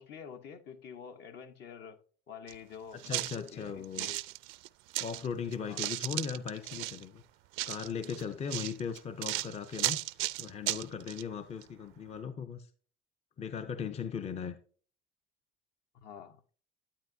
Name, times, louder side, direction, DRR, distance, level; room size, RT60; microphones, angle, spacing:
voice 1, 0.0-2.0 2.3-4.2 5.6-5.8 15.9-16.4, left 7 dB, 55° left, 0.9 m, -47 dB
sound 1, 2.5-2.6 3.0-5.3 5.5-7.0 7.5-11.2 11.6-11.7, right 19 dB, 65° right, 0.4 m, -35 dB
voice 2, 3.1-4.1 5.0-7.2 7.7-10.0 10.4-12.7 13.4-14.6, left 6 dB, 30° left, 0.6 m, -38 dB
10.0 x 9.0 x 2.7 m
supercardioid pair, 95°, 21 cm